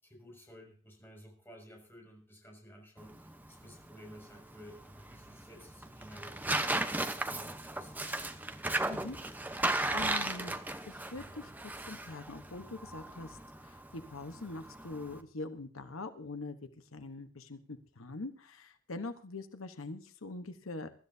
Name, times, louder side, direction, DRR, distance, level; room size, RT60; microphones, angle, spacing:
voice 1, 0.0-8.0, equal, 10° left, 0 dB, 6.4 m, -54 dB
Tearing, 3.0-15.2, right 2 dB, 10° right, 0.9 m, -36 dB
voice 2, 9.5-10.6 10.9-13.4 13.6-16.6 16.9-20.9, left 3 dB, 85° left, 9 dB, 1.2 m, -43 dB
23.0 x 13.0 x 2.8 m, 0.40 s
head